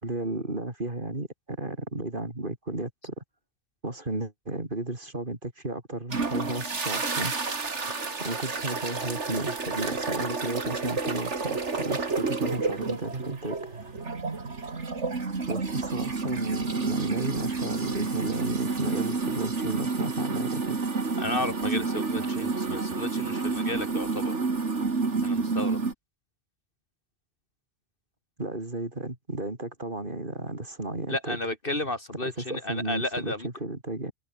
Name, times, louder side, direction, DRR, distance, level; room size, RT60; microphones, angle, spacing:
voice 1, 0.0-3.2 3.8-7.3 8.2-13.9 15.5-20.8 28.4-31.4 32.4-34.1, right 2 dB, 45° right, 4.3 m, -33 dB
sound 1, 6.1-25.9, right 4 dB, 85° right, 2.8 m, -30 dB
voice 2, 21.2-24.4 25.2-25.8 31.1-33.5, left 2 dB, 50° left, 4.3 m, -33 dB
omnidirectional pair, 1.2 m